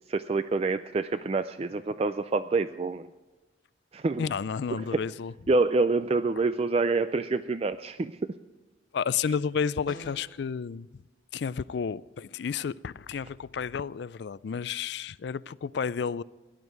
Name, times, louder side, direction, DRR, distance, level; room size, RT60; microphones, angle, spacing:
voice 1, 0.1-3.1 3.9-4.3 4.7-5.0 5.5-8.2, right 3 dB, 30° right, 0.3 m, -27 dB
voice 2, 4.2-5.3 8.9-10.9 11.3-16.2, left 6 dB, 60° left, 0.4 m, -31 dB
sound 1, 9.9-10.4, left 1 dB, 45° left, 1.7 m, -44 dB
18.0 x 11.0 x 4.7 m
head